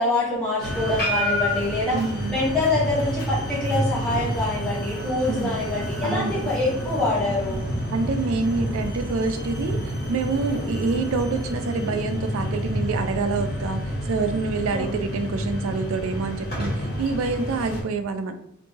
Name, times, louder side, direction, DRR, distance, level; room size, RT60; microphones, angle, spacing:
voice 1, 0.0-2.0 2.3-7.6 10.4-10.6 14.7-14.9, left 2 dB, 5° left, -8 dB, 1.2 m, -25 dB
sound 1, 0.6-17.8, equal, 50° left, 1.2 m, -29 dB
voice 2, 1.9-2.5 5.3-5.6 6.0-6.5 7.9-18.3, right 4 dB, 85° right, 8 dB, 0.3 m, -27 dB
2.7 x 2.5 x 2.8 m, 0.78 s
head